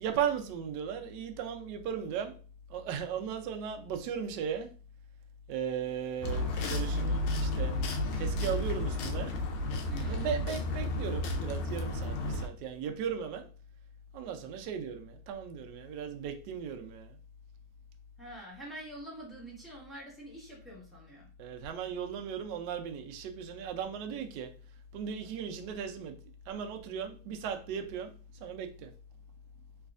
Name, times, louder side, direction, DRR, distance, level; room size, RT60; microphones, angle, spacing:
voice 1, 0.0-2.3 2.7-4.7 5.5-7.7 8.2-9.3 10.1-12.2 12.4-13.4 14.1-17.0 21.4-24.5 24.9-26.1 26.5-28.1 28.4-28.9, right 7 dB, 75° right, 1.0 m, -36 dB
sound 1, 6.2-12.5, left 2 dB, 75° left, 1.3 m, -32 dB
voice 2, 9.9-10.3 18.2-21.3, right 1 dB, ahead, 0.9 m, -46 dB
3.4 x 3.1 x 2.4 m
omnidirectional pair, 2.3 m